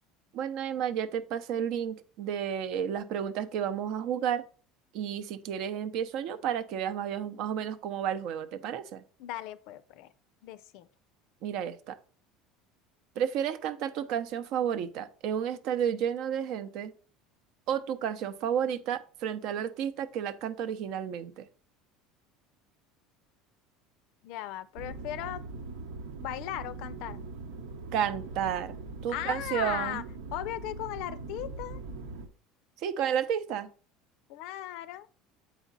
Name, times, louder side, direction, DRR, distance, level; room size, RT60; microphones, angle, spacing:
voice 1, 0.3-4.4 4.9-9.0 11.4-12.0 13.2-16.9 17.7-21.5 27.9-28.7 29.0-30.0 32.8-33.7, right 9 dB, 50° right, 0.7 m, -31 dB
voice 2, 9.2-10.1 10.4-10.9 24.2-25.4 26.2-27.3 29.1-30.0 30.3-31.8 34.3-35.1, left 13 dB, 55° left, 0.5 m, -37 dB
sound 1, 24.7-32.3, right 3 dB, 85° right, 1.0 m, -41 dB
8.2 x 5.0 x 4.0 m
cardioid pair, 170°, 0 cm